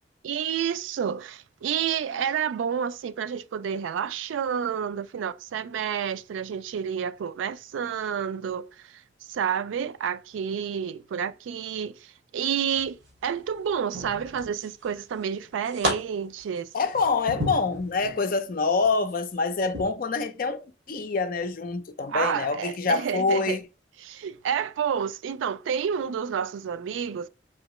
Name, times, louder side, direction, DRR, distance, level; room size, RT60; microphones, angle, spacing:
voice 1, 0.2-8.7 9.3-16.7 22.1-23.6 24.0-27.3, right 8 dB, 85° right, 0.3 m, -29 dB
sound 1, 12.8-13.2 13.9-14.8 15.2-15.9 16.4-18.2 18.7-18.9 19.7-19.9, equal, 65° right, 2.0 m, -32 dB
voice 2, 16.7-23.6, left 4 dB, 50° left, 0.5 m, -26 dB
4.5 x 2.9 x 3.0 m
head